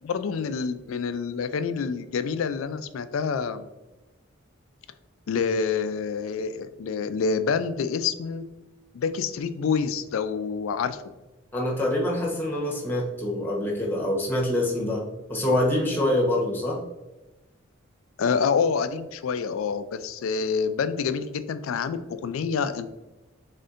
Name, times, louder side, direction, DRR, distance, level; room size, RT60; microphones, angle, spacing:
voice 1, 0.0-3.7 5.3-8.4 8.9-11.0 18.2-22.9, left 5 dB, 85° left, 11 dB, 0.4 m, -27 dB
voice 2, 11.5-15.0 15.3-16.8, left 1 dB, 10° left, -2 dB, 0.9 m, -25 dB
4.2 x 3.6 x 2.5 m, 1.1 s
head